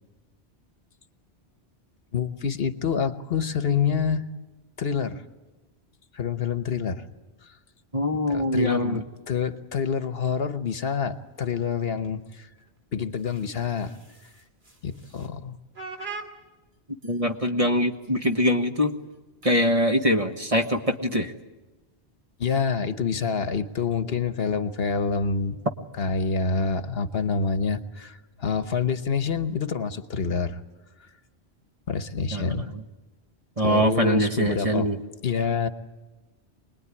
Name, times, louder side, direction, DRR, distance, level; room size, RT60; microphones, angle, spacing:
voice 1, 2.1-4.2 4.8-5.2 6.1-7.0 7.4-7.6 8.3-12.5 12.9-14.0 14.8-15.6 22.4-25.6 26.0-30.6 31.9-32.7 33.6-34.9 35.2-35.7, left 5 dB, 65° left, 10 dB, 1.2 m, -27 dB
voice 2, 7.9-9.0 17.0-18.9 19.4-21.3 32.3-32.6 33.6-35.0, equal, 30° right, 4 dB, 1.4 m, -23 dB
sound 1, 11.1-12.8 13.1-15.3 15.7-16.3 16.7-16.8 17.0-17.4 17.9-18.0 18.2-18.6 19.1-19.2 19.4-19.8 20.3-21.0, right 4 dB, 65° right, 3.0 m, -44 dB
25.0 x 20.5 x 9.8 m, 1.1 s
omnidirectional pair, 1.1 m